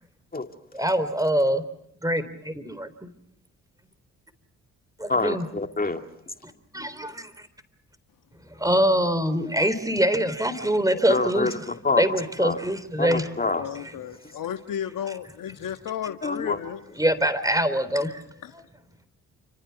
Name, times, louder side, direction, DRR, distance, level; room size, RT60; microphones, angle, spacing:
voice 1, 0.7-1.6 2.0-3.1 5.0-5.5 6.7-7.5 8.5-11.5 12.0-13.3 17.0-18.2, right 1 dB, 10° right, 3.8 m, -24 dB
voice 2, 5.1-6.0 11.1-12.0 12.4-12.6 13.0-13.6 16.2-16.6, left 3 dB, 25° left, 2.3 m, -26 dB
voice 3, 13.5-16.8 18.4-18.5, left 9 dB, 70° left, 1.5 m, -33 dB
29.0 x 26.0 x 5.9 m
supercardioid pair, 55°, 34 cm